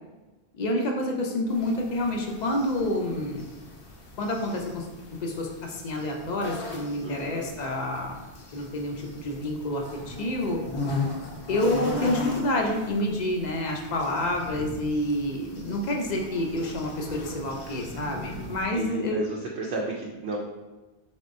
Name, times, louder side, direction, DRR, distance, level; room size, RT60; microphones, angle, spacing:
voice 1, 0.5-3.4 4.2-4.9 5.2-8.2 8.5-10.6 11.5-19.2, left 1 dB, 50° left, 1 dB, 0.6 m, -28 dB
sound 1, 1.5-18.6, left 2 dB, 80° left, 1.1 m, -38 dB
voice 2, 7.0-7.5 18.7-20.4, right 3 dB, 80° right, -2 dB, 0.9 m, -33 dB
4.3 x 3.5 x 2.6 m, 1.2 s
omnidirectional pair, 1.1 m